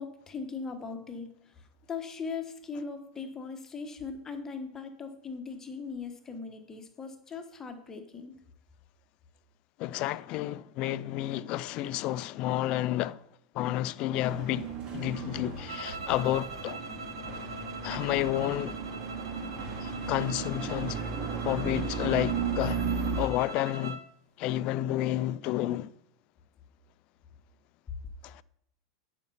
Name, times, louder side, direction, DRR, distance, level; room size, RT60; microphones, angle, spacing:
voice 1, 0.0-8.3, left 5 dB, 20° left, 1.2 m, -39 dB
voice 2, 9.8-13.2 13.5-16.8 17.8-18.8 19.8-21.0 21.4-22.8 23.2-24.0 24.4-25.9 28.2-28.4, left 14 dB, 45° left, 0.4 m, -30 dB
sound 1, 14.2-23.3, right 4 dB, 40° right, 2.0 m, -35 dB
sound 2, 15.7-24.1, right 3 dB, 75° right, 0.7 m, -43 dB
10.5 x 5.3 x 5.6 m
figure-of-eight pair, 90°, 2 cm